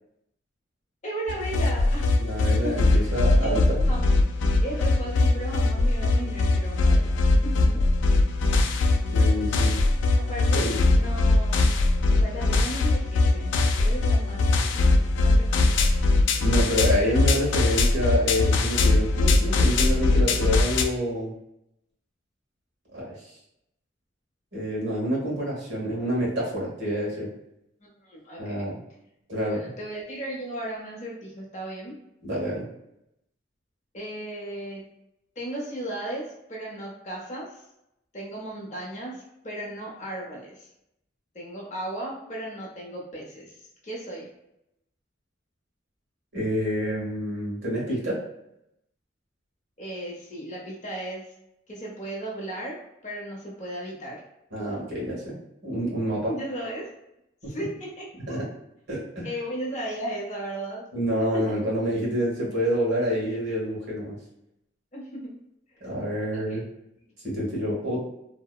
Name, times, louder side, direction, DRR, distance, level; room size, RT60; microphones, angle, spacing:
voice 1, 1.0-2.1 2.6-3.0 3.4-4.1 4.6-7.1 7.4-7.8 10.2-10.7 10.9-11.6 12.1-14.9 15.2-15.8 27.8-28.7 29.5-32.0 33.9-34.9 35.4-37.6 38.1-40.7 41.3-43.6 43.8-44.3 49.8-51.2 51.7-52.8 53.0-54.2 56.3-56.9 57.5-58.4 59.2-60.8 61.1-61.6 64.9-65.4 66.3-66.7 67.0-67.1, right 1 dB, 40° left, -3 dB, 0.7 m, -35 dB
sound 1, 1.3-20.8, left 2 dB, 85° left, 0.3 m, -21 dB
voice 2, 2.2-3.8 9.0-9.8 10.5-10.8 16.4-21.3 22.9-23.2 24.5-27.3 28.4-28.8 29.3-29.6 32.2-32.7 46.3-48.2 54.5-55.3 55.6-56.3 58.3-58.5 58.9-59.3 60.9-64.2 65.8-66.6 67.2-68.0, equal, 75° right, -4 dB, 1.1 m, -27 dB
2.7 x 2.0 x 2.3 m, 0.83 s
head